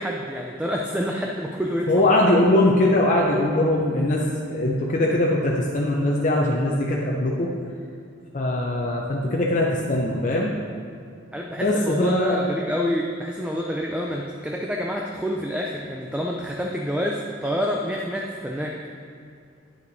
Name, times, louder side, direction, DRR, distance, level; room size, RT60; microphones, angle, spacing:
voice 1, 0.0-2.0 11.3-18.7, equal, 5° right, -1 dB, 0.4 m, -28 dB
voice 2, 1.9-7.5 8.3-10.5 11.6-12.4, left 1 dB, 40° left, -2 dB, 0.6 m, -21 dB
10.0 x 5.6 x 4.0 m, 2.4 s
head